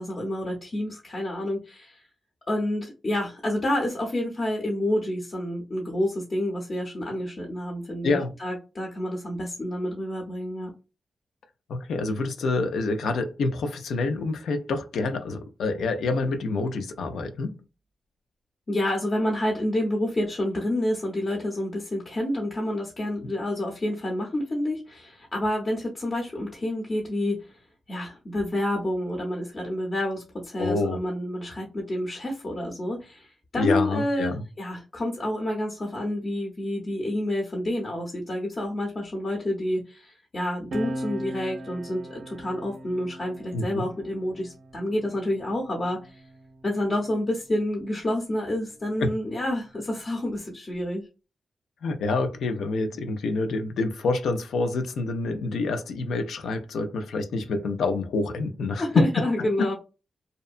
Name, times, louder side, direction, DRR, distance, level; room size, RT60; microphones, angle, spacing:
voice 1, 0.0-2.0 2.5-10.7 18.7-27.6 27.9-34.3 34.6-46.2 46.6-51.0 58.8-59.7, left 1 dB, 45° left, 0.8 m, -29 dB
voice 2, 8.0-8.3 11.7-17.6 30.6-31.0 33.6-34.4 43.5-43.9 49.0-49.1 51.8-59.1 59.4-59.7, left 3 dB, 85° left, 0.4 m, -27 dB
sound 1, 40.7-47.6 48.6-50.4, equal, 70° right, 0.4 m, -40 dB
2.7 x 2.1 x 2.4 m
cardioid pair, 65°, 0 cm